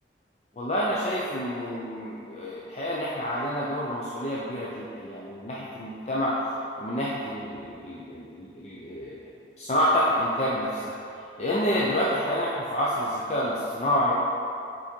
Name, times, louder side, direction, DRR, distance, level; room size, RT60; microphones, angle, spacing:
voice 1, 0.6-6.3 6.8-9.2 9.6-10.9 11.4-14.1, equal, 40° left, -6 dB, 0.6 m, -28 dB
7.2 x 4.2 x 4.5 m, 2.6 s
head